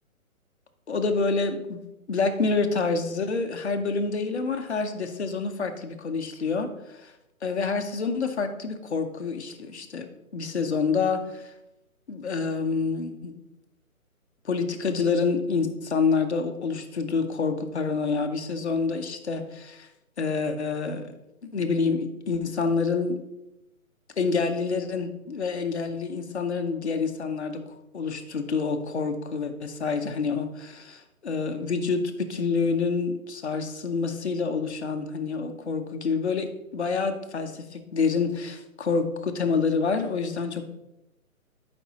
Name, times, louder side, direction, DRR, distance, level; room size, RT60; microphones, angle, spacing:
voice 1, 0.9-1.8 2.1-7.1 7.4-10.1 10.3-11.5 12.1-13.3 14.4-19.9 20.2-21.1 21.4-23.2 24.2-27.6 27.9-40.7, left 4 dB, 50° left, 5 dB, 0.8 m, -27 dB
11.0 x 5.2 x 2.9 m, 0.93 s
hypercardioid pair, 180°, 43 cm